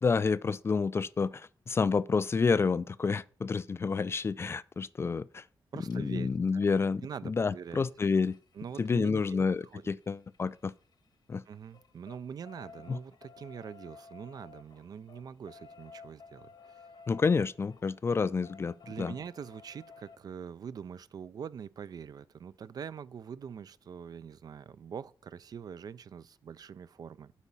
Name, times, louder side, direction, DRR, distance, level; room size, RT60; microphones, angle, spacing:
voice 1, 0.0-5.4 5.9-8.4 8.8-10.7 11.3-11.4 12.9-13.0 17.1-19.1, left 5 dB, 30° left, 0.3 m, -29 dB
voice 2, 5.7-6.7 7.0-7.8 8.5-10.0 11.5-16.9 18.9-27.3, right 7 dB, 55° right, 0.4 m, -44 dB
sound 1, 5.9-6.0 7.6-11.1 11.4-20.2 21.8-21.9 22.2-22.3 22.6-22.7, left 5 dB, 70° left, 1.3 m, -55 dB
8.3 x 4.9 x 5.4 m
cardioid pair, 100°, 8 cm